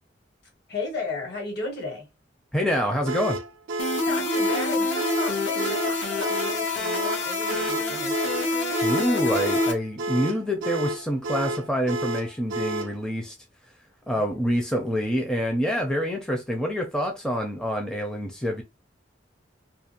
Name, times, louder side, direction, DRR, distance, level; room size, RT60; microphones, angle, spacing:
voice 1, 0.7-2.1 4.0-8.4 14.1-14.6, left 3 dB, 60° left, 1.3 m, -35 dB
voice 2, 2.5-3.4 8.8-13.3 14.1-18.6, equal, 5° left, 0.4 m, -26 dB
sound 1, 3.0-13.0, right 1 dB, 85° right, 0.4 m, -31 dB
sound 2, 3.8-9.7, left 2 dB, 75° left, 0.8 m, -26 dB
2.4 x 2.4 x 2.8 m
head